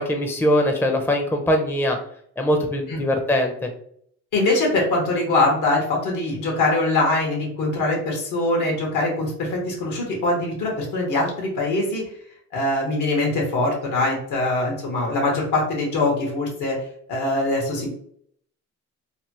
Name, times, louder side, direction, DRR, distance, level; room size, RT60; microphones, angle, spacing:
voice 1, 0.0-2.0 2.4-3.7, equal, 5° left, 4 dB, 0.5 m, -21 dB
voice 2, 4.3-12.0 12.5-16.8 17.1-17.9, left 2 dB, 80° left, -1 dB, 1.4 m, -23 dB
3.3 x 2.3 x 2.9 m, 0.65 s
cardioid pair, 90°, 30 cm